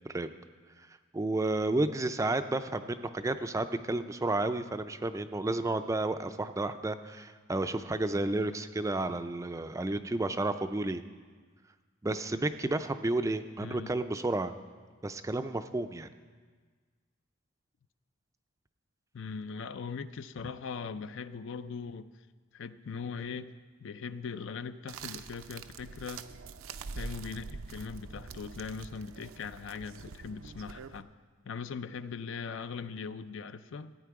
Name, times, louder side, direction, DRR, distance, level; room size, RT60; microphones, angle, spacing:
voice 1, 1.1-11.0 12.0-14.5 15.0-16.1, right 2 dB, 15° right, 10 dB, 0.4 m, -31 dB
voice 2, 13.6-13.9 19.1-22.1 22.5-23.5 23.8-26.2 26.9-31.1 31.4-33.9, left 5 dB, 65° left, 12 dB, 0.4 m, -40 dB
sound 1, 24.9-31.0, right 4 dB, 75° right, 0.5 m, -44 dB
15.0 x 9.1 x 4.7 m, 1.5 s
head